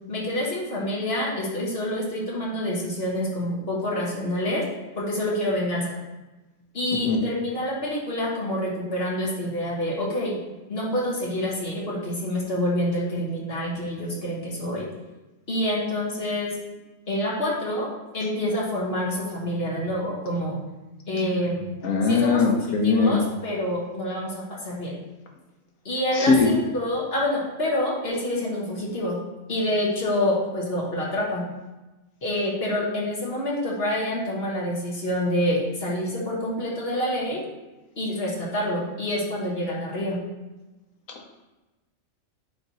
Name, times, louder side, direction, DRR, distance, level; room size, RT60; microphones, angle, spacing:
voice 1, 0.1-4.6 5.0-6.0 6.7-10.4 10.7-14.9 15.5-16.6 17.1-20.6 21.1-21.7 22.0-25.0 25.8-29.2 29.5-31.5 32.2-37.4 38.0-40.2, left 1 dB, 50° left, -4 dB, 1.5 m, -27 dB
voice 2, 21.8-23.2 26.1-26.5, left 4 dB, 80° left, 2 dB, 1.3 m, -20 dB
8.3 x 3.0 x 4.1 m, 1.1 s
omnidirectional pair, 1.4 m